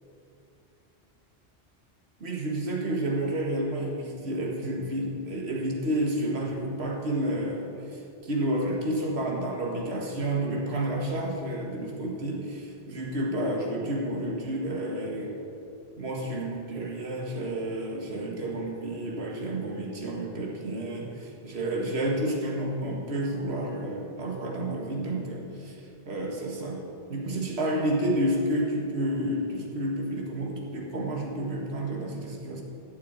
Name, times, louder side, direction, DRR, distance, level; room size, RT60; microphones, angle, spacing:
voice 1, 2.2-15.4 16.0-25.8 26.1-26.8 27.1-32.6, right 1 dB, 70° right, -1 dB, 2.1 m, -30 dB
14.0 x 8.0 x 8.8 m, 2.6 s
omnidirectional pair, 1.1 m